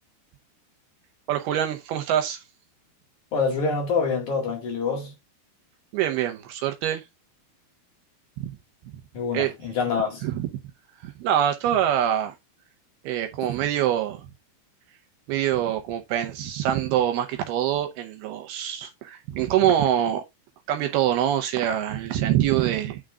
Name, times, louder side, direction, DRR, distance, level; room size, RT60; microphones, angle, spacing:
voice 1, 1.3-2.4 5.9-7.0 8.4-8.5 9.3-9.5 10.2-10.5 11.0-12.3 13.0-14.3 15.3-20.2 20.7-23.0, right 11 dB, 75° right, 2.4 m, -24 dB
voice 2, 3.3-5.1 9.1-10.2, left 5 dB, 50° left, 3.0 m, -26 dB
9.4 x 4.0 x 3.7 m
omnidirectional pair, 5.3 m